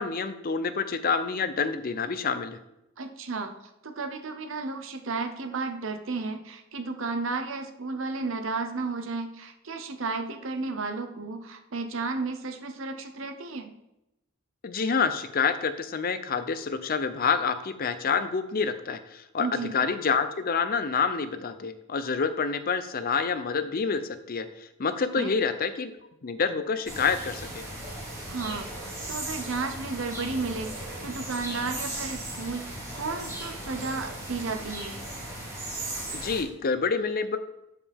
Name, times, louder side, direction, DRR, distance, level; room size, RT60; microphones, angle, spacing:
voice 1, 0.0-2.6 14.6-24.0 24.3-24.5 24.8-26.0 26.2-27.6 36.1-37.4, left 5 dB, 45° left, 11 dB, 0.5 m, -27 dB
voice 2, 3.0-3.5 3.8-13.7 19.4-19.7 25.2-25.3 28.3-35.0, right 3 dB, 65° right, 6 dB, 0.8 m, -33 dB
sound 1, 26.9-36.4, right 1 dB, 15° right, 3.1 m, -37 dB
12.5 x 5.0 x 3.5 m, 0.87 s
head